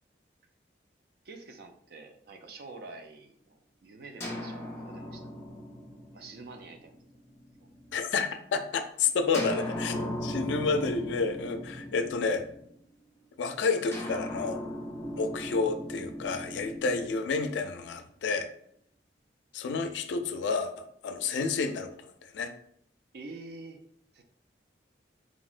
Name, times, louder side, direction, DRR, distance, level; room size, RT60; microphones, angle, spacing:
voice 1, 1.2-5.3 6.1-7.0 7.6-7.7 23.1-23.8 24.1-24.2, right 3 dB, 55° right, 5 dB, 0.4 m, -47 dB
sound 1, 4.2-8.0 9.3-12.9 13.9-18.0, equal, 15° left, 0.6 m, -38 dB
voice 2, 7.9-12.5 13.4-14.6 15.2-18.5 19.5-22.5, left 4 dB, 85° left, 8 dB, 0.3 m, -30 dB
3.7 x 2.1 x 2.4 m, 0.66 s
head